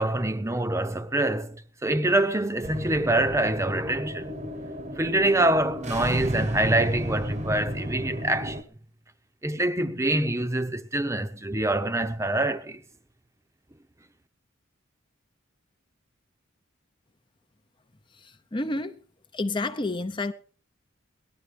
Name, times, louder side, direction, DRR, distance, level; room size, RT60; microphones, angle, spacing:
voice 1, 0.0-4.3 5.0-8.6 9.4-12.8, right 1 dB, 15° right, 0.9 m, -25 dB
sound 1, 2.6-8.6, equal, 35° right, 1.1 m, -33 dB
voice 2, 18.2-19.0 19.3-20.3, left 2 dB, 25° left, 0.7 m, -30 dB
18.5 x 11.5 x 5.2 m
head